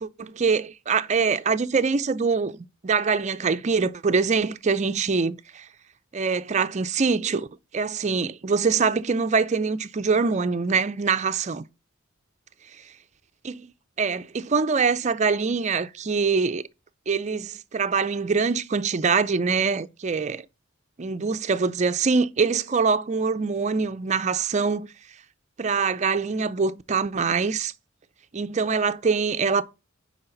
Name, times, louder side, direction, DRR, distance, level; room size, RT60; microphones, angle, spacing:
voice 1, 0.0-5.7 6.1-7.5 7.7-11.6 13.4-13.7 14.0-16.6 17.1-20.5 21.0-24.9 25.6-27.7 28.3-29.6, right 5 dB, 35° right, 0.5 m, -24 dB
9.9 x 4.8 x 3.9 m
head